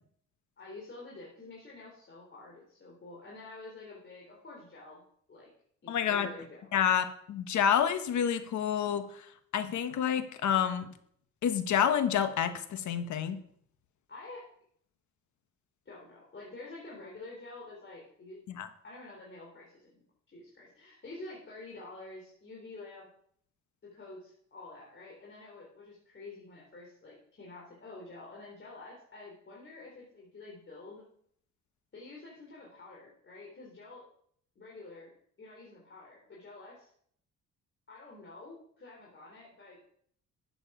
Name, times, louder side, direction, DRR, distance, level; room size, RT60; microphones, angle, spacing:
voice 1, 0.6-5.0 5.3-5.5 5.8-6.6 14.1-14.5 15.9-18.4 18.8-23.1 23.9-31.0 31.9-34.0 34.6-35.1 35.4-36.9 37.9-39.8, left 2 dB, 40° left, -3 dB, 3.6 m, -48 dB
voice 2, 5.9-6.3 6.7-9.3 9.5-10.9 11.4-13.4 18.5-18.7, left 8 dB, 70° left, 10 dB, 1.3 m, -28 dB
12.5 x 8.1 x 4.9 m, 0.66 s
cardioid pair, 90°, 30 cm